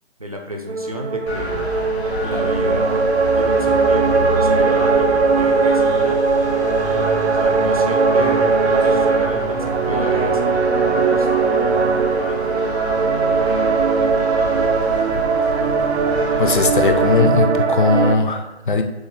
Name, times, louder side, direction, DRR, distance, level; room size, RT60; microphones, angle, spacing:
voice 1, 0.2-1.7 2.2-6.4 7.3-11.3 11.6-12.4, equal, 35° right, 2 dB, 0.4 m, -31 dB
sound 1, 0.7-18.2, right 4 dB, 85° right, 0.5 m, -19 dB
sound 2, 1.3-17.2, left 1 dB, 75° left, 1.3 m, -29 dB
voice 2, 16.4-18.8, left 4 dB, 50° left, 6 dB, 0.5 m, -18 dB
6.1 x 2.1 x 3.3 m, 1.0 s
hypercardioid pair, 165°, 33 cm